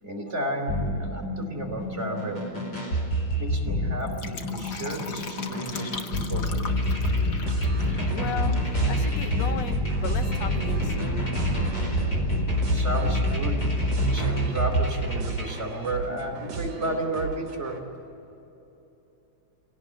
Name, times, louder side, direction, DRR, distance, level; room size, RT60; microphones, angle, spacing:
voice 1, 0.0-2.5 3.4-6.5 12.7-13.7 14.1-17.8, right 1 dB, 20° right, 0 dB, 3.8 m, -32 dB
sound 1, 0.7-15.6, equal, 30° left, 4.8 m, -27 dB
Fill (with liquid), 3.9-8.7 9.0-9.1, left 4 dB, 85° left, 0.9 m, -39 dB
sound 2, 7.5-17.8, right 5 dB, 50° right, 3.2 m, -36 dB
voice 2, 8.1-8.6 8.9-11.3, left 8 dB, 60° left, 8 dB, 2.1 m, -35 dB
26.0 x 17.5 x 9.3 m, 3.0 s
omnidirectional pair, 3.8 m